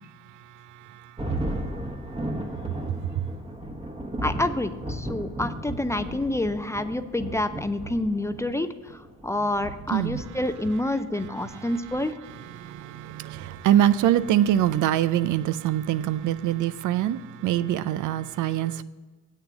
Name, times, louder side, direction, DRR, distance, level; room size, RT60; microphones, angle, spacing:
Thunder, 1.2-15.1, right 1 dB, 20° right, 1.2 m, -36 dB
voice 1, 4.2-12.1, left 1 dB, 10° left, 0.5 m, -28 dB
voice 2, 12.6-18.8, right 11 dB, 75° right, 0.5 m, -24 dB
8.1 x 6.7 x 6.0 m
cardioid pair, 90°, 30 cm